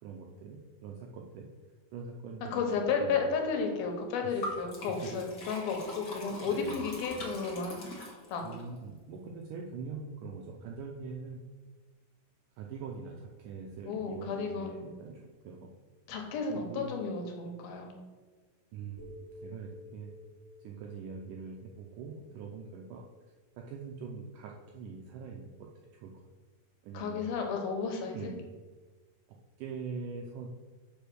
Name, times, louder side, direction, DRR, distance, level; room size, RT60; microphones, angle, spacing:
voice 1, 0.0-1.5 1.9-2.7 3.0-3.2 4.2-4.5 5.0-5.1 6.1-6.9 8.4-11.4 12.6-15.7 16.5-16.9 18.7-19.1 19.4-20.1 20.6-23.0 23.6-26.1 26.8-27.3 28.1-28.4 29.6-30.5, right 5 dB, 80° right, 0 dB, 1.9 m, -43 dB
voice 2, 2.5-7.9 8.3-8.5 13.9-14.8 16.1-17.9 26.9-28.3, left 5 dB, 75° left, 3 dB, 3.0 m, -33 dB
Liquid, 4.4-8.6, left 1 dB, 60° left, 1.1 m, -42 dB
sound 1, 19.0-23.1, left 1 dB, 55° right, 4.4 m, -53 dB
6.7 x 5.5 x 6.1 m, 1.3 s
omnidirectional pair, 4.4 m